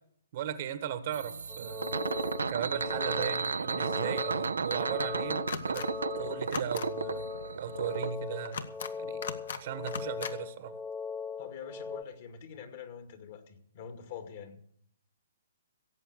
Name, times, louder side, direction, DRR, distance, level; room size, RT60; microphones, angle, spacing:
voice 1, 0.3-1.9 2.5-5.9 6.2-7.3 7.6-8.6 9.0-9.2 9.6-10.8, right 9 dB, 50° right, 1.2 m, -37 dB
sound 1, 1.1-8.1, right 5 dB, 75° right, 0.5 m, -33 dB
sound 2, 1.5-12.0, left 6 dB, 10° left, 0.9 m, -40 dB
sound 3, 5.5-5.9 6.4-6.9 8.4-8.9 9.2-9.6 9.9-10.3, left 6 dB, 65° left, 1.2 m, -37 dB
voice 2, 11.4-14.6, left 8 dB, 50° left, 2.3 m, -45 dB
17.0 x 7.9 x 6.6 m
figure-of-eight pair, 130°, 0 cm